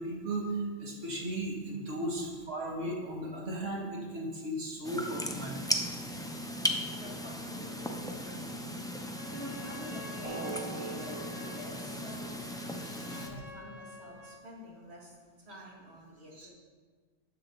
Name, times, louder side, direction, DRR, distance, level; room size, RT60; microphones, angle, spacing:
voice 1, 0.0-5.5 12.8-13.4 16.3-16.5, right 1 dB, 80° right, -2 dB, 2.0 m, -36 dB
sound 1, 4.8-13.3, left 1 dB, 5° left, 0.4 m, -37 dB
voice 2, 6.4-8.8 9.3-12.5 13.1-16.5, equal, 60° right, -4 dB, 2.4 m, -48 dB
Trumpet, 9.0-14.5, left 3 dB, 35° left, 0.7 m, -50 dB
Drum, 10.2-12.8, right 3 dB, 30° right, 1.2 m, -42 dB
9.9 x 7.0 x 3.9 m, 1.5 s
omnidirectional pair, 1.2 m